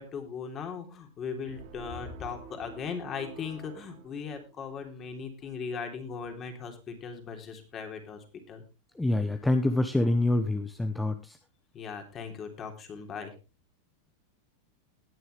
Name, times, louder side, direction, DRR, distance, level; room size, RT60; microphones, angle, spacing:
voice 1, 0.0-8.6 11.7-13.3, left 6 dB, 30° left, 5 dB, 3.4 m, -38 dB
sound 1, 1.5-4.8, right 7 dB, 60° right, 3.9 m, -49 dB
voice 2, 8.9-11.4, left 2 dB, 5° left, 8 dB, 1.0 m, -26 dB
20.0 x 6.9 x 3.4 m, 0.30 s
supercardioid pair, 130°, 0 cm